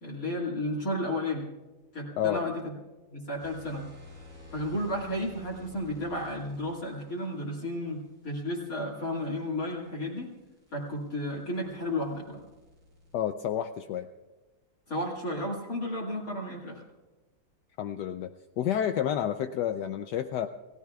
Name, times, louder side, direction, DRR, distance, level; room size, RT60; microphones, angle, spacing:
voice 1, 0.0-1.5 1.9-2.7 3.1-3.9 4.5-10.3 10.7-12.4 14.9-16.8, left 1 dB, 50° left, -3 dB, 2.6 m, -33 dB
sound 1, 3.4-7.3 9.5-13.2, left 2 dB, 85° right, 7.4 m, -51 dB
voice 2, 13.1-14.1 17.8-18.3 18.6-20.5, left 10 dB, 70° left, 8 dB, 1.2 m, -29 dB
30.0 x 17.0 x 2.4 m, 1.2 s
omnidirectional pair, 2.0 m